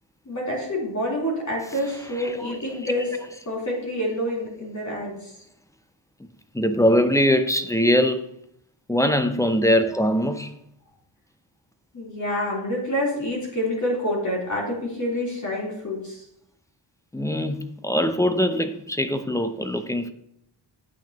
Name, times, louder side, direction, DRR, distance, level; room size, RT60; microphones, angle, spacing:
voice 1, 0.3-3.1 3.4-5.3 11.9-16.2, left 1 dB, 40° left, -4 dB, 3.5 m, -27 dB
voice 2, 2.2-2.9 6.5-8.3 8.9-10.6 17.1-20.1, equal, 5° left, 9 dB, 0.4 m, -22 dB
9.1 x 8.7 x 2.9 m, 0.74 s
wide cardioid pair, 150°, 45 cm